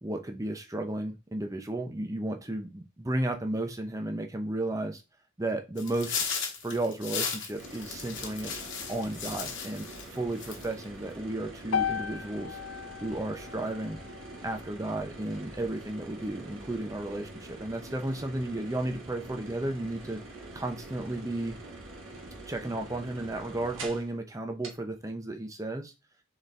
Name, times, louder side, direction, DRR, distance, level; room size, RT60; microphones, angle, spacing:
voice 1, 0.0-5.0 5.4-6.2 6.6-8.5 8.9-12.6 13.0-14.0 14.4-17.3 17.6-20.2 20.5-21.6 22.5-25.9, right 1 dB, 15° right, 5 dB, 0.6 m, -33 dB
sound 1, 5.8-10.1 10.4-10.8, left 6 dB, 55° left, 1.2 m, -35 dB
sound 2, 7.6-24.1 24.6-24.7, right 2 dB, 70° right, 1.1 m, -45 dB
sound 3, 11.7-15.9, left 8 dB, 75° left, 0.5 m, -36 dB
4.1 x 3.8 x 3.3 m, 0.27 s
head